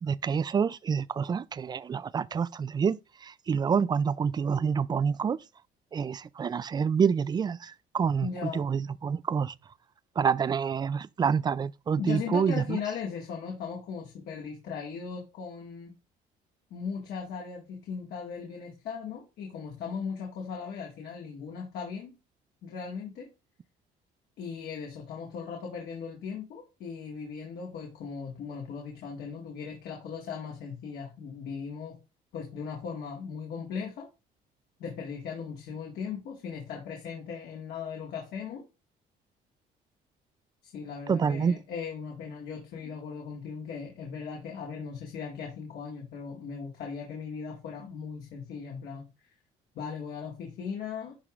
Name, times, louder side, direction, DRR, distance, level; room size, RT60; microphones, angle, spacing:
voice 1, 0.0-5.4 5.9-9.5 10.2-12.8 41.1-41.5, right 6 dB, 25° right, 0.3 m, -27 dB
voice 2, 8.2-8.6 12.0-15.9 16.7-22.1 22.6-23.3 24.4-32.0 32.3-34.1 34.8-38.6 40.7-49.1 49.8-51.1, left 6 dB, 70° left, 1.9 m, -38 dB
11.0 x 3.7 x 3.2 m
cardioid pair, 110°, 17 cm